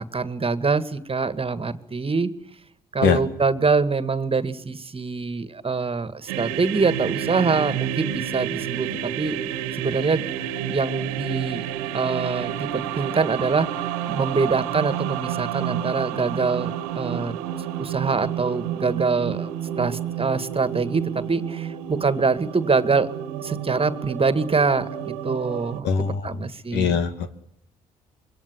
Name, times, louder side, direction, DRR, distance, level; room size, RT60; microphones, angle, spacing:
voice 1, 0.0-2.3 2.9-9.4 9.7-11.6 11.9-17.3 17.8-19.5 19.8-21.0 21.3-23.1 23.4-25.9 26.2-27.0, right 4 dB, 30° right, 13 dB, 2.1 m, -24 dB
sound 1, 6.3-25.8, right 10 dB, 80° right, 1.7 m, -30 dB
voice 2, 25.8-27.3, left 6 dB, 70° left, 10 dB, 2.3 m, -23 dB
26.0 x 23.0 x 9.9 m, 0.73 s
hypercardioid pair, 50°, 19 cm